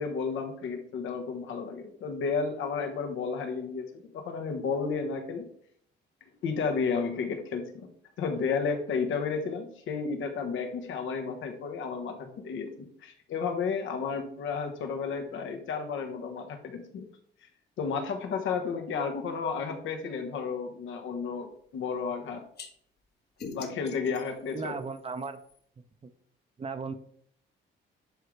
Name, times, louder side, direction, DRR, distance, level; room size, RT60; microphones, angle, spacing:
voice 1, 0.0-5.5 6.4-7.9 8.2-17.1 17.8-22.5 23.5-24.8, left 5 dB, 80° left, 5 dB, 1.4 m, -32 dB
sound 1, 22.6-22.7 23.4-25.6, left 4 dB, 55° left, 1.3 m, -44 dB
voice 2, 24.5-25.4 25.8-26.1 26.6-26.9, right 4 dB, 30° right, 10 dB, 0.8 m, -36 dB
11.0 x 3.8 x 3.3 m, 0.64 s
cardioid pair, 90°, 20 cm